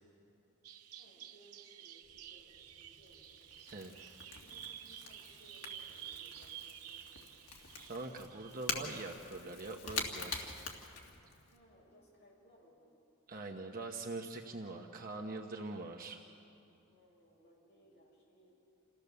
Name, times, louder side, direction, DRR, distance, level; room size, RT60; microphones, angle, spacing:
Bird vocalization bird call bird song, 0.6-9.0, right 10 dB, 85° right, 0.7 m, -51 dB
voice 1, 0.9-3.5 4.3-7.3 11.4-13.0 16.9-18.5, right 1 dB, 50° left, -4 dB, 6.9 m, -64 dB
Crackle / Crack, 2.0-11.6, left 5 dB, 75° left, 2.3 m, -46 dB
voice 2, 7.9-10.5 13.3-16.2, right 2 dB, 40° right, 2 dB, 1.0 m, -43 dB
28.0 x 15.5 x 6.9 m, 2.7 s
head